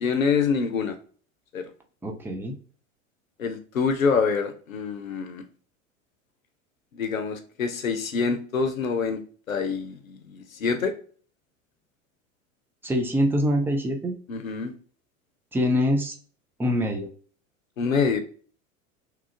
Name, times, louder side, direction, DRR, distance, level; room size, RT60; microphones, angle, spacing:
voice 1, 0.0-1.0 1.5-1.6 3.4-5.4 6.9-9.2 9.5-10.9 14.3-14.7 17.8-18.2, left 5 dB, 90° left, 8 dB, 0.6 m, -26 dB
voice 2, 2.0-2.6 12.8-14.2 15.5-16.1 16.6-17.1, equal, 5° right, 2 dB, 0.4 m, -24 dB
3.0 x 2.3 x 2.5 m, 0.42 s
figure-of-eight pair, 85°, 40 cm